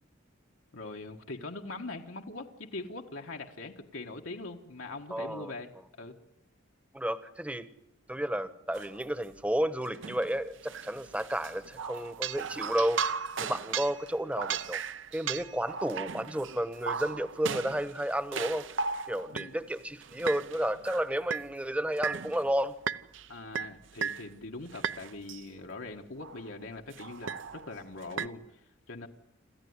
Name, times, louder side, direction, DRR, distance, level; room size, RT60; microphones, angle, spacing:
voice 1, 0.7-5.7 6.0-6.1 19.3-19.6 23.3-29.1, left 2 dB, 80° left, 2 dB, 1.6 m, -42 dB
voice 2, 5.1-5.5 6.9-7.7 8.1-14.8 15.1-18.6 19.1-22.7, right 1 dB, 5° right, 13 dB, 1.0 m, -32 dB
sound 1, 8.7-9.0 9.9-19.5 20.0-21.5 22.0-22.5 22.9-23.3 23.5-24.3 24.7-25.4 26.2-26.5 26.9-28.3, right 6 dB, 65° right, 0.8 m, -36 dB
27.0 x 14.5 x 9.6 m, 0.86 s
head